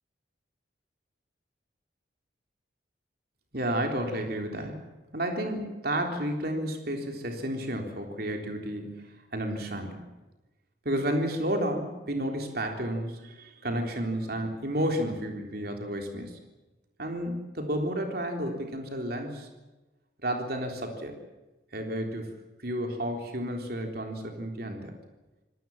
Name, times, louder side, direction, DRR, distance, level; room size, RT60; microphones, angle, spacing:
voice 1, 3.5-4.8 5.1-9.1 9.3-10.0 10.9-16.4 17.0-19.5 20.2-21.1 21.7-22.3 22.6-24.9, right 1 dB, 50° right, 3 dB, 3.7 m, -31 dB
26.0 x 18.5 x 7.3 m, 1.1 s
head